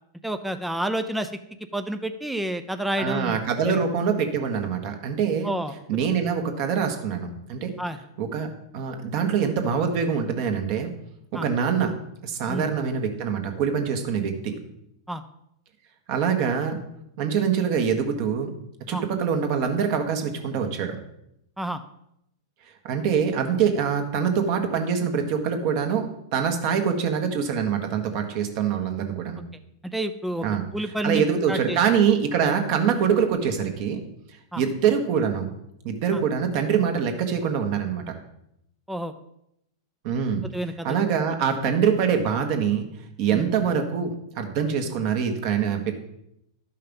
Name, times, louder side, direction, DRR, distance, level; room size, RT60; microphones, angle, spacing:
voice 1, 0.2-1.3 1.7-3.8 5.4-5.8 7.8-8.0 11.3-11.5 12.5-12.7 15.1-15.2 18.9-19.0 21.6-21.8 29.8-30.5 30.7-31.8 34.5-34.6 36.1-36.2 38.9-39.1 40.5-41.0 43.3-43.5, right 1 dB, ahead, 8 dB, 0.5 m, -29 dB
voice 2, 3.0-5.5 5.9-7.7 8.2-10.9 11.3-11.9 12.2-14.6 16.1-16.8 17.2-18.5 18.9-21.0 22.8-29.4 30.4-30.6 31.0-34.0 34.5-35.5 35.8-38.0 40.0-40.4 40.8-42.8 43.2-45.9, right 7 dB, 50° right, 5 dB, 1.6 m, -24 dB
12.0 x 5.6 x 5.4 m, 0.79 s
hypercardioid pair, 135°, 2 cm